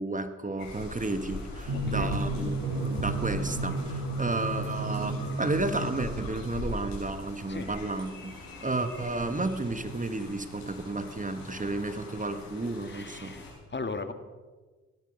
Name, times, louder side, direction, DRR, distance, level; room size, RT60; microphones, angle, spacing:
voice 1, 0.0-8.3 8.6-13.3, right 2 dB, 25° right, 9 dB, 1.7 m, -32 dB
sound 1, 0.6-13.5, left 2 dB, 85° left, 6.8 m, -41 dB
voice 2, 1.7-2.2 7.5-7.7 12.8-14.1, left 3 dB, 30° left, 9 dB, 1.8 m, -38 dB
Drum, 1.7-6.7, right 2 dB, 70° right, 3.8 m, -33 dB
18.0 x 13.5 x 5.6 m, 1.3 s
supercardioid pair, 50°, 34 cm